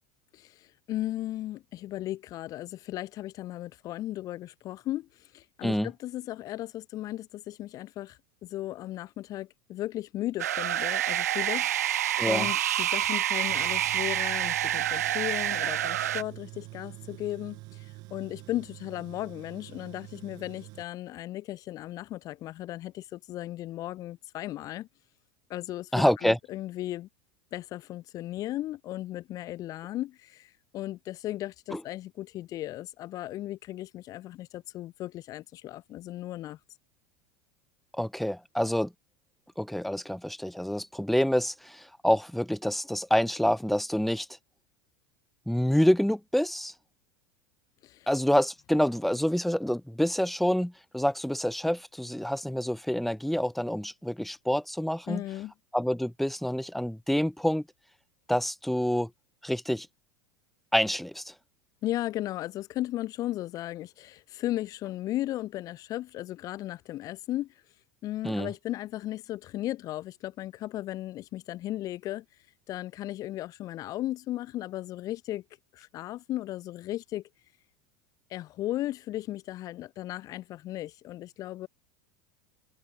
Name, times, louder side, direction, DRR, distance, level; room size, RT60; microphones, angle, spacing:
voice 1, 0.3-12.0 12.2-24.9 25.5-27.1 27.5-36.6 47.8-48.1 55.1-55.5 61.8-67.5 68.0-72.2 72.7-75.4 75.7-77.2 78.3-81.7, left 14 dB, 45° left, 1.1 m, -36 dB
sound 1, 10.4-16.2, right 12 dB, 85° right, 0.4 m, -28 dB
voice 2, 12.2-12.5 25.9-26.4 31.7-31.8 37.9-38.9 39.6-44.3 45.5-46.7 48.1-55.2 55.7-57.6 58.3-59.1 59.4-59.9 60.7-61.3 68.2-68.5, equal, ahead, 1.6 m, -27 dB
Tools, 13.5-20.8, right 23 dB, 55° right, 4.9 m, -46 dB
hypercardioid pair, 90°, 8 cm